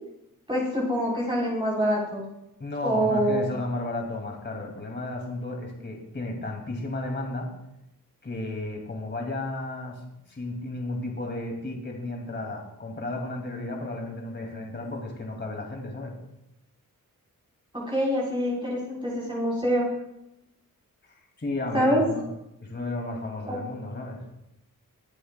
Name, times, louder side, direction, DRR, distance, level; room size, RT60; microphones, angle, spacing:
voice 1, 0.5-2.2 2.8-3.4 17.9-19.9 21.7-22.0 23.5-23.6, equal, 15° right, -6 dB, 3.7 m, -25 dB
voice 2, 2.6-7.5 8.2-10.0 10.3-16.1 21.0-22.2 22.6-24.2, left 2 dB, 30° left, 1 dB, 2.3 m, -33 dB
20.5 x 7.7 x 2.2 m, 0.85 s
cardioid pair, 80°, 33 cm